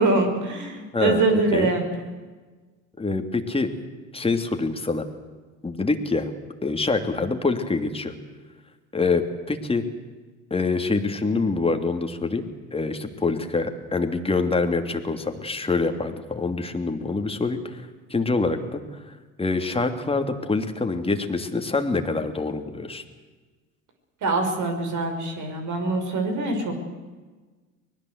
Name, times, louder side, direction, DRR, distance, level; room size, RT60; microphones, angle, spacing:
voice 1, 0.0-1.8 24.2-26.8, right 3 dB, 50° right, 5 dB, 5.8 m, -24 dB
voice 2, 0.9-1.7 3.0-3.7 4.1-5.0 5.6-6.3 6.6-8.1 8.9-9.8 10.5-18.8 19.4-23.0, left 3 dB, 15° left, 6 dB, 2.9 m, -25 dB
24.5 x 19.5 x 8.2 m, 1.3 s
hypercardioid pair, 75°, 38 cm